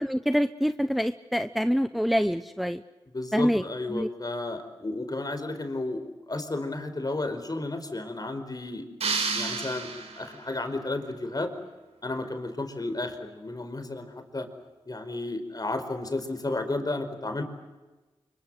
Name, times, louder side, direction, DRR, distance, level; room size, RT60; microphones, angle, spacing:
voice 1, 0.0-2.8 3.3-3.6 3.9-4.1, equal, ahead, 11 dB, 0.9 m, -26 dB
voice 2, 3.1-9.9 10.2-11.5 12.0-14.5 14.8-17.4, left 2 dB, 35° left, 8 dB, 4.8 m, -33 dB
sound 1, 9.0-10.5, right 4 dB, 75° right, 4.5 m, -31 dB
25.5 x 23.5 x 7.9 m, 1.2 s
cardioid pair, 40°, 11 cm